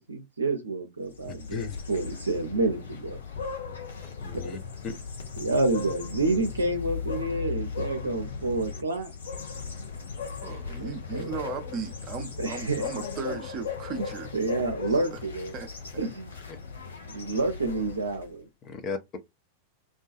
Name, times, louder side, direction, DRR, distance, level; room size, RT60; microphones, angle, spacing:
voice 1, 0.0-3.2 5.4-9.1 10.8-11.3 12.4-13.0 13.9-14.1 14.3-15.6 16.0-16.4 17.0-18.5, right 2 dB, 75° right, 0.5 m, -29 dB
sound 1, 1.1-18.4, left 5 dB, 70° left, 0.7 m, -37 dB
voice 2, 4.2-4.6 4.8-4.9 16.5-16.6 18.7-19.2, left 5 dB, 30° left, 0.6 m, -35 dB
voice 3, 10.4-14.3 15.1-15.2 15.5-15.7, right 6 dB, 35° right, 0.6 m, -37 dB
2.4 x 2.3 x 2.4 m
figure-of-eight pair, 90°, 0 cm